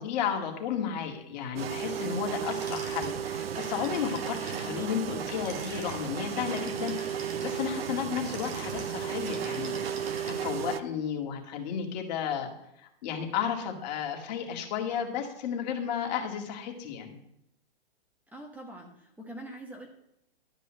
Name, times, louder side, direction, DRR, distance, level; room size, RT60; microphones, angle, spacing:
voice 1, 0.0-12.5 12.8-17.2, left 8 dB, 45° left, 3 dB, 2.2 m, -33 dB
sound 1, 1.6-10.8, right 8 dB, 75° right, 0.9 m, -34 dB
sound 2, 2.5-10.6, right 3 dB, 25° right, 2.0 m, -44 dB
voice 2, 4.6-5.3 18.3-19.9, right 1 dB, 5° right, 1 dB, 1.2 m, -44 dB
12.0 x 5.4 x 7.6 m, 0.79 s
hypercardioid pair, 145°, 30 cm